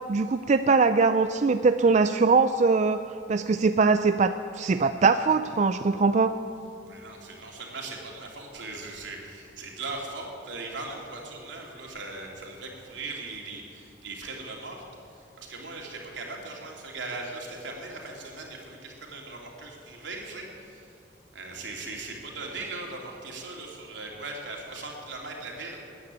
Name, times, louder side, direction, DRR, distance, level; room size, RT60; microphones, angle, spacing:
voice 1, 0.1-3.0 3.3-6.3, right 4 dB, 40° right, 9 dB, 0.4 m, -22 dB
voice 2, 6.9-14.8 15.1-20.9 21.3-25.8, right 3 dB, 75° right, -1 dB, 3.1 m, -39 dB
14.5 x 9.5 x 9.6 m, 2.5 s
head